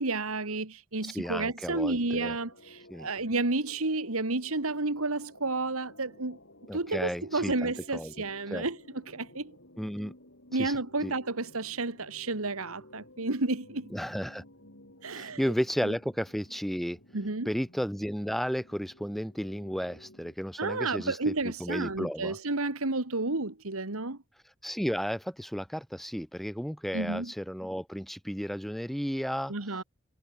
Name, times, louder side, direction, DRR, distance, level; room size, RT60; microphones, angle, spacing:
voice 1, 0.0-6.4 6.7-8.8 9.1-9.5 10.5-13.9 15.0-15.4 17.1-17.5 20.6-24.2 26.9-27.3 29.5-29.8, right 3 dB, 85° right, 2.0 m, -31 dB
voice 2, 1.0-2.4 2.9-3.1 6.7-8.1 8.5-8.7 9.8-10.1 10.5-10.8 11.0-11.1 13.9-14.4 15.1-17.0 17.5-22.4 24.6-29.5, equal, ahead, 2.0 m, -33 dB
sound 1, 1.7-20.3, left 1 dB, 60° left, 6.5 m, -55 dB
head